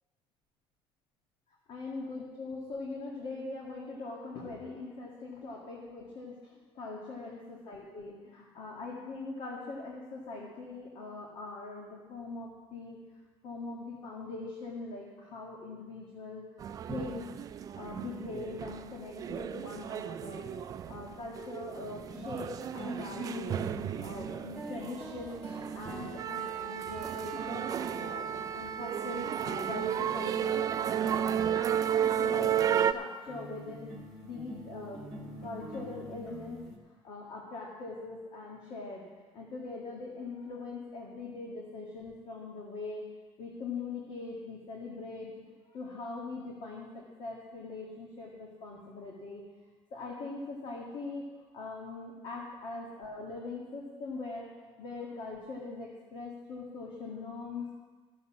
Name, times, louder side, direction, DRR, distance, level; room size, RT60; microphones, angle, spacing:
voice 1, 1.7-6.3 6.8-13.0 13.4-16.4 16.9-17.3 17.8-23.6 24.0-25.4 25.7-27.7 28.0-30.6 31.0-33.9 34.2-36.6 37.0-39.0 39.3-43.1 43.4-45.3 45.7-46.9 47.2-49.4 49.9-51.2 51.5-54.5 54.8-57.8, left 3 dB, 50° left, -3 dB, 2.0 m, -42 dB
sound 1, 16.6-32.9, right 9 dB, 35° right, 0.4 m, -33 dB
sound 2, 21.7-21.8 22.1-29.4 30.9-36.8, equal, 5° left, 1.8 m, -46 dB
13.5 x 7.0 x 7.3 m, 1.3 s
cardioid pair, 155°, 11 cm